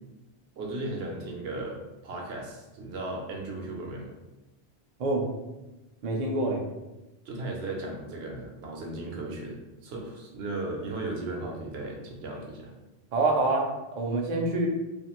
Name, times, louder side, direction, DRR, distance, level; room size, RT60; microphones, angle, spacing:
voice 1, 0.6-1.8 2.0-4.1 7.2-12.7, right 2 dB, 75° right, -1 dB, 0.9 m, -36 dB
voice 2, 6.0-6.6 13.1-13.7 14.0-14.7, right 2 dB, 55° right, 0 dB, 0.5 m, -26 dB
2.5 x 2.3 x 2.9 m, 1.0 s
omnidirectional pair, 1.1 m